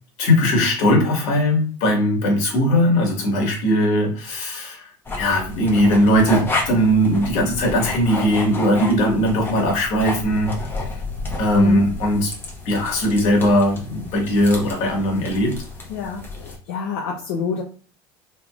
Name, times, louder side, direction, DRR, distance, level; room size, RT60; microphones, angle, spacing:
voice 1, 0.2-4.9 5.2-10.6 11.4-12.3 12.7-15.6, equal, 65° left, 1 dB, 1.7 m, -19 dB
sound 1, 5.1-16.6, left 3 dB, 20° left, 1.1 m, -31 dB
voice 2, 15.9-17.6, left 5 dB, 85° left, -1 dB, 0.8 m, -27 dB
3.6 x 3.2 x 2.4 m, 0.38 s
supercardioid pair, 115°, 12 cm